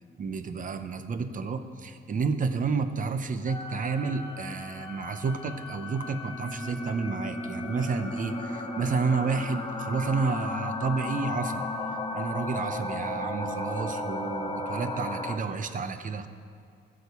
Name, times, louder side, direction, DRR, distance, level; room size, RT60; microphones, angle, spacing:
voice 1, 0.2-11.6 12.1-16.3, right 4 dB, 40° right, 10 dB, 0.8 m, -30 dB
sound 1, 3.5-15.4, left 2 dB, 20° left, 1.3 m, -35 dB
15.0 x 6.4 x 6.9 m, 2.2 s
cardioid pair, 90°, 20 cm